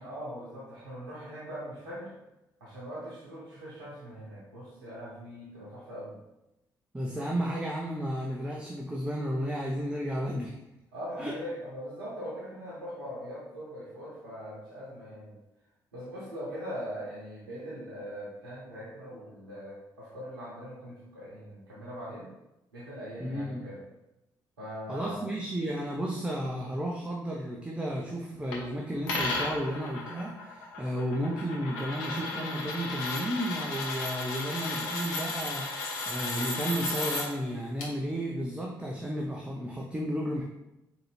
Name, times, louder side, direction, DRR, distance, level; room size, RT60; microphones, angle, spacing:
voice 1, 0.0-2.1 2.6-6.2 10.9-15.3 15.9-22.3 22.7-23.8 24.6-25.2, equal, 80° right, -8 dB, 0.8 m, -41 dB
voice 2, 6.9-10.5 11.2-11.4 23.2-23.6 24.9-40.4, equal, 10° right, -2 dB, 0.5 m, -33 dB
sound 1, 28.5-28.6 29.1-37.3 37.8-37.9, left 2 dB, 70° left, 0.6 m, -34 dB
3.8 x 2.7 x 3.2 m, 0.92 s
figure-of-eight pair, 45°, 11 cm